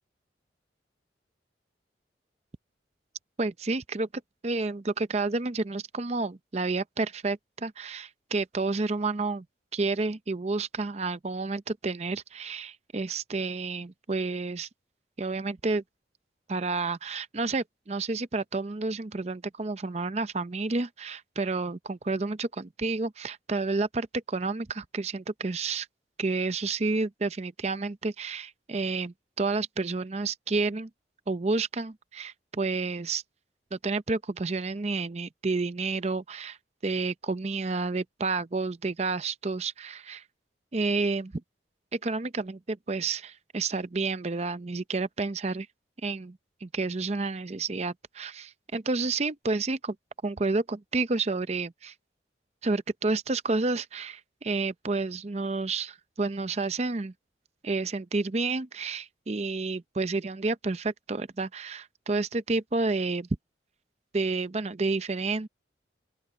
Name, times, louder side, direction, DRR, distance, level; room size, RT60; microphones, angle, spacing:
voice 1, 3.4-4.1 4.4-9.4 9.7-14.7 15.2-15.8 16.5-25.9 26.2-30.9 31.3-33.2 33.7-36.6 36.8-40.2 40.7-41.4 41.9-45.7 46.0-50.0 50.2-51.9 52.6-57.1 57.6-63.3 64.1-65.5, right 3 dB, 35° right, 0.6 m, -30 dB
open air
head